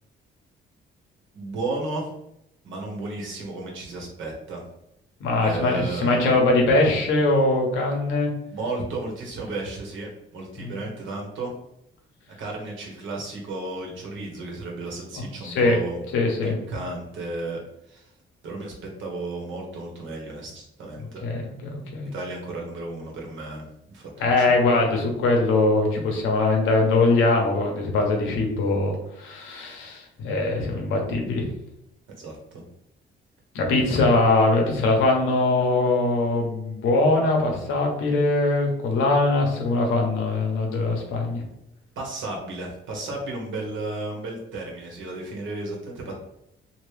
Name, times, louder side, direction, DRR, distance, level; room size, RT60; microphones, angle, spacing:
voice 1, 1.3-2.1 2.6-4.6 5.4-6.4 8.5-11.5 12.4-16.0 16.4-17.6 17.9-18.1 18.4-21.2 22.1-24.6 32.1-32.6 42.0-46.1, right 2 dB, 75° right, -1 dB, 1.2 m, -33 dB
voice 2, 5.2-8.3 10.6-10.8 15.4-15.8 16.1-16.5 21.2-22.1 24.2-31.4 33.5-41.4, left 2 dB, 85° left, 0 dB, 1.0 m, -22 dB
2.9 x 2.8 x 3.3 m, 0.82 s
cardioid pair, 90°, 20 cm